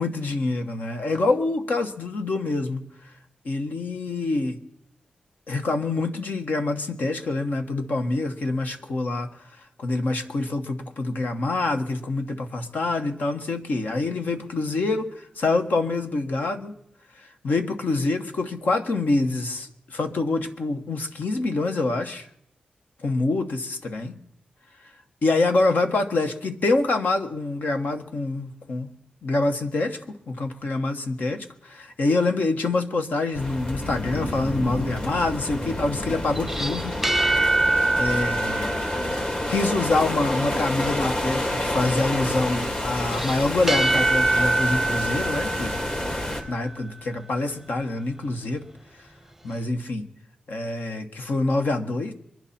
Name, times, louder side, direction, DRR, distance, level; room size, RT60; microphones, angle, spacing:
voice 1, 0.0-2.8 3.4-4.6 5.5-9.3 9.6-16.7 17.2-22.3 23.0-24.2 25.2-28.9 29.2-30.0 30.3-37.0 38.0-38.8 39.5-45.7 46.5-48.7 49.4-50.1 50.5-52.1, left 2 dB, 75° left, 1.4 m, -26 dB
sound 1, 33.3-46.4, left 1 dB, 45° left, 3.0 m, -29 dB
sound 2, 36.4-39.9 43.1-46.7, right 2 dB, 10° right, 0.7 m, -25 dB
24.5 x 10.5 x 4.3 m
cardioid pair, 50°, 3 cm